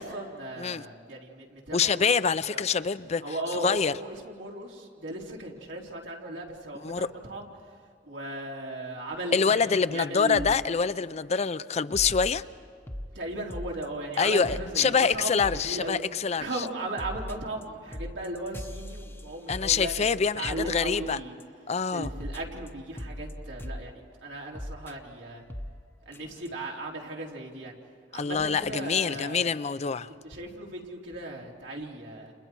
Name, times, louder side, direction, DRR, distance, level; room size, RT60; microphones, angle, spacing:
voice 1, 0.0-2.0 2.5-2.6 3.2-7.5 8.1-9.6 9.9-10.5 13.1-16.0 16.4-20.1 20.3-21.3 21.9-25.4 26.1-27.8 28.1-29.5 30.2-32.3, right 1 dB, 90° right, 3.6 m, -37 dB
voice 2, 1.7-3.2 3.5-3.9 6.8-7.1 9.3-12.4 14.2-16.7 19.5-21.2 21.7-22.1 28.1-30.1, left 5 dB, 40° left, 0.5 m, -26 dB
sound 1, 10.3-10.6 11.0-11.2 11.9-13.1 13.5-13.8 14.1-14.2 14.4-14.8 15.1-15.2 15.4-15.7 16.0-16.4 16.7-21.4 21.7-21.8 22.0-23.8 24.5-24.9 25.5-25.7 26.1-26.2 26.4-26.5, equal, 15° left, 0.8 m, -39 dB
30.0 x 29.0 x 4.6 m
head